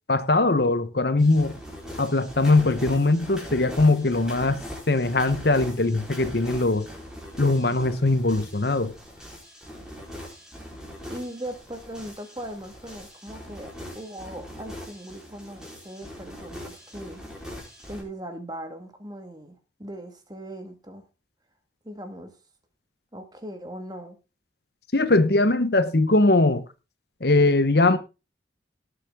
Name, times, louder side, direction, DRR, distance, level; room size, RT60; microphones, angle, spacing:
voice 1, 0.1-1.5 2.0-4.6 4.9-6.9 7.4-8.9 24.9-26.6 27.2-28.0, left 2 dB, 55° left, 1.1 m, -21 dB
sound 1, 1.2-18.0, equal, 5° right, 4.1 m, -41 dB
voice 2, 11.1-17.2 17.8-21.0 21.8-22.4 23.1-24.2, right 1 dB, 20° right, 1.9 m, -39 dB
18.0 x 7.5 x 3.7 m
head